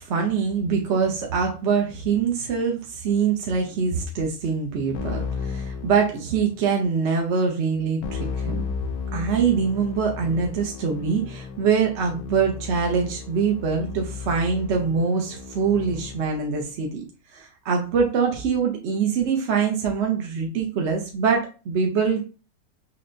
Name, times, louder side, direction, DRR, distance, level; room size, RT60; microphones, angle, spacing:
voice 1, 0.0-8.7 9.1-17.0 17.3-22.3, right 5 dB, 60° right, 1 dB, 0.8 m, -24 dB
Keyboard (musical), 4.9-6.6 8.0-16.4, left 5 dB, 80° left, 1.0 m, -34 dB
5.9 x 2.1 x 2.5 m, 0.34 s
omnidirectional pair, 1.6 m